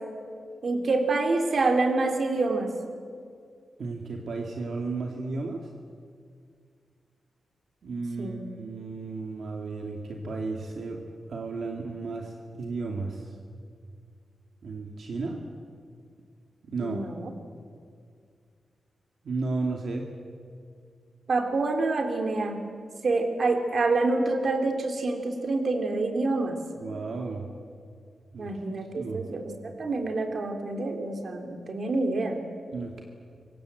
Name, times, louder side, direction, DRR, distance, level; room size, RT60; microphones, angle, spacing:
voice 1, 0.6-2.7 8.2-8.4 16.8-17.3 21.3-22.6 23.0-26.6 28.4-32.4, right 3 dB, 45° right, 5 dB, 3.0 m, -27 dB
voice 2, 3.8-5.7 7.8-11.0 11.3-13.4 14.6-15.4 16.7-17.0 19.2-20.1 26.8-27.5 28.3-28.5 29.0-29.2 32.7-33.0, right 3 dB, 60° right, 1 dB, 2.4 m, -33 dB
27.0 x 23.5 x 8.0 m, 2.2 s
wide cardioid pair, 170°, 0 cm